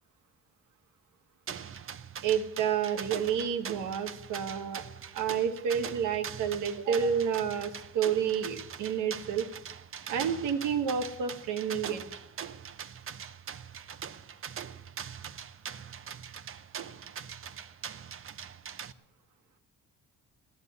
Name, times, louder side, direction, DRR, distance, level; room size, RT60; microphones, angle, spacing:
sound 1, 1.5-18.9, right 7 dB, 45° right, 0.8 m, -42 dB
voice 1, 2.2-4.9 5.1-9.5 10.1-12.0, right 7 dB, 85° right, 7 dB, 1.4 m, -30 dB
16.5 x 11.0 x 7.0 m, 0.85 s
cardioid pair, 90°, 30 cm